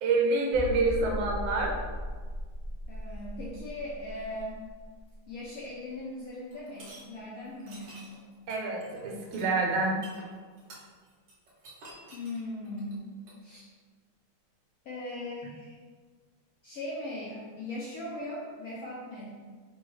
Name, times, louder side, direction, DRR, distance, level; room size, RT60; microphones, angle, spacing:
voice 1, 0.0-1.8 8.5-10.0, right 3 dB, 90° right, 0 dB, 1.6 m, -27 dB
sound 1, 0.5-6.0 6.3-6.4 6.9-7.0, left 1 dB, 25° left, 0.4 m, -38 dB
voice 2, 2.9-4.6 5.3-8.2 12.1-13.1 13.4-13.7 14.8-15.8 16.6-19.3, left 1 dB, 70° left, -6 dB, 0.8 m, -39 dB
sound 2, 6.5-7.0 7.6-13.4, right 2 dB, 60° right, 1.5 m, -50 dB
4.0 x 2.3 x 4.6 m, 1.5 s
omnidirectional pair, 2.2 m